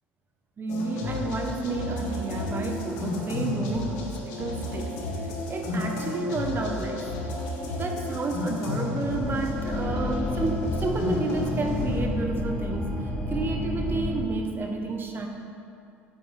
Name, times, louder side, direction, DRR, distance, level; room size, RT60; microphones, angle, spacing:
voice 1, 0.6-4.9 5.2-7.0 7.6-12.9 13.3-15.3, right 3 dB, 35° right, 3 dB, 1.2 m, -31 dB
sound 1, 0.7-12.0, left 2 dB, 75° left, 1.5 m, -32 dB
sound 2, 9.1-14.2, left 1 dB, 20° left, 2.0 m, -30 dB
8.8 x 8.2 x 3.5 m, 2.5 s
hypercardioid pair, 70°, 6 cm